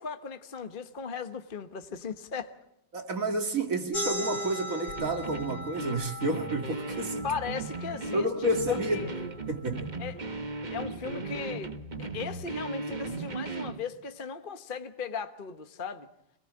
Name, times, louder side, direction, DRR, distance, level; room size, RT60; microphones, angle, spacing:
voice 1, 0.0-2.5 7.2-9.1 10.0-10.2 10.7-11.7 12.0-16.1, left 5 dB, 35° left, 1.3 m, -37 dB
voice 2, 2.9-7.3 8.1-9.1 9.5-9.9, right 1 dB, 50° right, 2.8 m, -30 dB
sound 1, 3.9-9.1, equal, 65° left, 3.8 m, -38 dB
sound 2, 5.0-13.8, right 3 dB, 30° right, 1.4 m, -37 dB
27.0 x 21.0 x 8.8 m
omnidirectional pair, 1.9 m